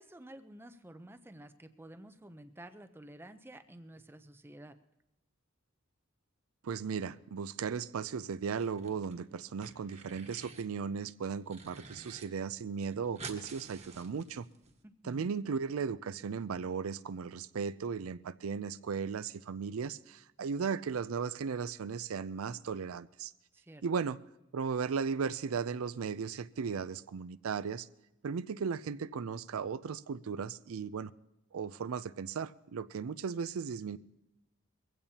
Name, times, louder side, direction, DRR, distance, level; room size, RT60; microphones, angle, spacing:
voice 1, 0.0-4.8 14.8-15.3 23.5-23.8, right 1 dB, 10° right, 0.6 m, -51 dB
voice 2, 6.6-14.5 15.0-23.3 23.8-24.2 24.5-27.9 28.2-31.1 31.5-34.0, right 6 dB, 80° right, 0.4 m, -36 dB
sound 1, 8.5-9.1 9.4-10.7 11.1-12.2 12.5-12.6 12.8-14.7, right 4 dB, 30° right, 1.4 m, -49 dB
22.0 x 16.0 x 2.8 m
head